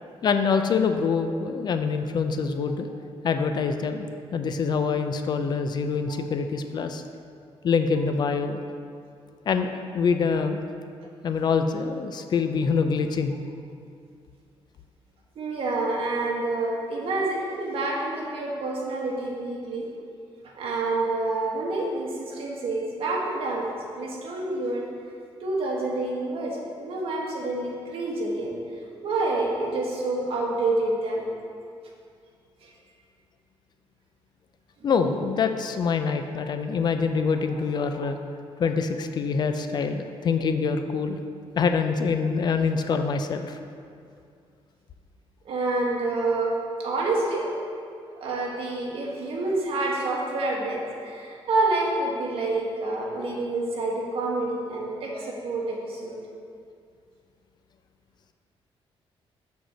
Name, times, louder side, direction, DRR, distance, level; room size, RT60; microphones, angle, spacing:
voice 1, 0.2-2.9 3.2-4.1 4.3-7.0 7.6-8.6 9.5-10.6 11.2-13.4 34.8-38.2 38.6-41.2 41.6-43.6, left 5 dB, 45° left, 7 dB, 0.4 m, -25 dB
voice 2, 15.3-19.9 20.4-24.9 25.4-28.6 29.0-31.3 32.6-32.7 36.4-36.5 37.9-38.1 45.4-47.6 48.2-56.2, right 2 dB, 65° right, -2 dB, 1.5 m, -28 dB
6.3 x 4.8 x 6.7 m, 2.3 s
cardioid pair, 155°, 10 cm